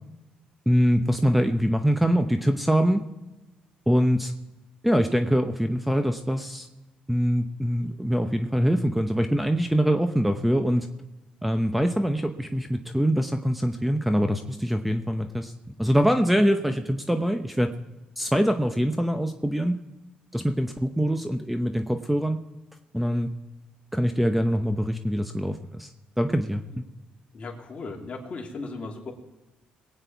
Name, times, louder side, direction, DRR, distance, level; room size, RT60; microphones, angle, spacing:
voice 1, 0.7-3.0 3.9-4.3 4.8-6.7 7.1-10.9 11.4-17.7 18.2-19.8 20.3-22.4 22.9-23.3 23.9-25.9 26.2-26.8, equal, 5° right, 7 dB, 0.9 m, -24 dB
voice 2, 27.3-29.1, left 3 dB, 45° left, 0 dB, 2.8 m, -36 dB
21.0 x 9.0 x 4.6 m, 1.0 s
cardioid pair, 95°, 3 cm